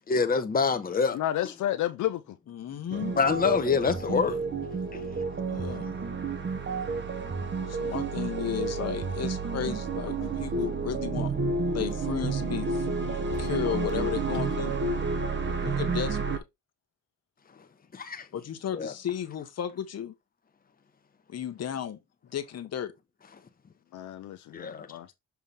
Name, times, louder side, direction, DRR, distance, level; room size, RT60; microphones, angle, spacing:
voice 1, 0.1-1.2 3.2-4.4 4.9-5.0 17.9-18.3 18.7-18.9 24.5-24.9, left 5 dB, 30° left, 1.2 m, -26 dB
voice 2, 1.1-2.4 10.2-10.3 13.3-13.8 23.9-25.1, left 12 dB, 75° left, 0.8 m, -32 dB
voice 3, 2.5-3.1 5.5-5.9 7.7-11.3 11.7-12.9 13.4-14.7 15.6-16.4 18.3-20.1 21.3-22.0 22.3-22.9, left 9 dB, 55° left, 1.3 m, -34 dB
sound 1, 2.9-16.4, right 4 dB, 40° right, 1.6 m, -30 dB
7.1 x 3.5 x 4.5 m
cardioid pair, 90°, 30 cm